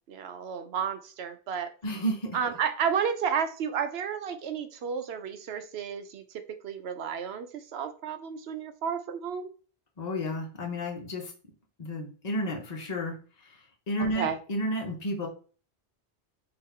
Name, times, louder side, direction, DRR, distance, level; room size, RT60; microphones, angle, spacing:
voice 1, 0.1-1.7 2.3-9.5 14.0-14.4, right 7 dB, 70° right, 9 dB, 0.9 m, -32 dB
voice 2, 1.8-2.4 10.0-11.3 11.8-13.2 13.9-15.3, equal, 40° left, 2 dB, 1.0 m, -31 dB
4.0 x 2.9 x 4.3 m, 0.37 s
omnidirectional pair, 1.1 m